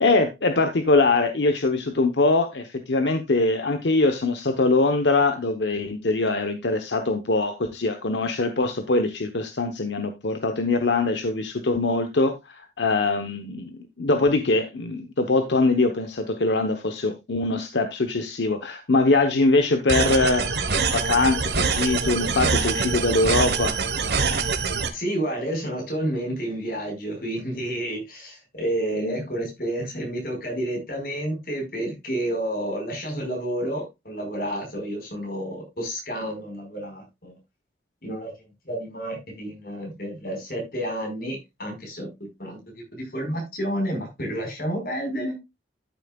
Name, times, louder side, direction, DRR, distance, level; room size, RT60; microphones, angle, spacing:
voice 1, 0.0-20.6 20.9-23.8 28.9-29.2, left 3 dB, 85° left, 1.0 m, -23 dB
sound 1, 19.9-24.9, right 4 dB, 70° right, 1.3 m, -24 dB
voice 2, 24.9-37.3 38.0-38.3 38.6-42.1 42.4-45.4, right 1 dB, 55° left, 4.7 m, -30 dB
12.5 x 7.2 x 2.3 m
head